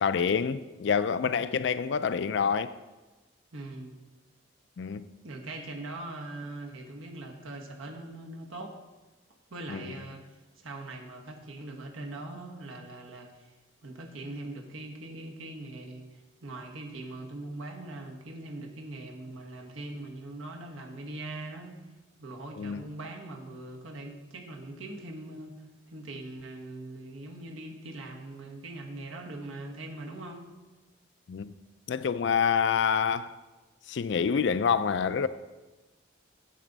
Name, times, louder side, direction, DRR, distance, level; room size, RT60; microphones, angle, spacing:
voice 1, 0.0-2.7 4.8-5.1 9.7-9.9 22.6-22.8 31.3-31.6 31.9-33.4 33.9-35.3, left 6 dB, 60° left, 0.4 m, -27 dB
voice 2, 3.5-3.9 5.2-8.8 9.5-10.2 10.6-13.5 13.8-16.1 16.4-21.8 22.2-25.6 25.9-30.5, right 2 dB, 85° right, 1.3 m, -41 dB
9.2 x 7.2 x 4.0 m
head